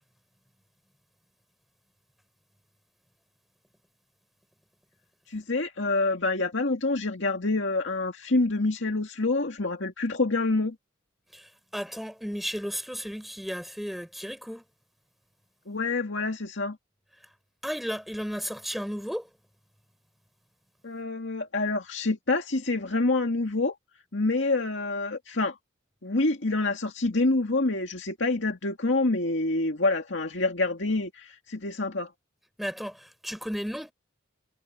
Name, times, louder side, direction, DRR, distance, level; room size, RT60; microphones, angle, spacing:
voice 1, 5.3-10.8 15.7-16.8 20.8-23.8 24.1-25.6 26.0-32.1, left 2 dB, 70° left, 2.1 m, -27 dB
voice 2, 11.3-14.6 17.6-19.3 32.6-33.9, equal, ahead, 4.0 m, -34 dB
head